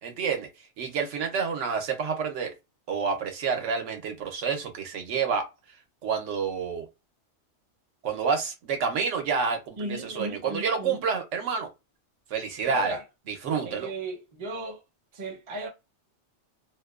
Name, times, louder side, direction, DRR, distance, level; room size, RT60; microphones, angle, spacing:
voice 1, 0.0-0.5 0.8-2.5 2.9-5.5 6.0-6.9 8.0-11.7 12.3-13.0 13.3-13.9, right 5 dB, 85° right, 1.0 m, -28 dB
voice 2, 9.8-11.0 12.7-13.0 13.6-14.8 15.1-15.7, right 2 dB, 35° right, 0.5 m, -36 dB
2.6 x 2.1 x 2.3 m
omnidirectional pair, 1.2 m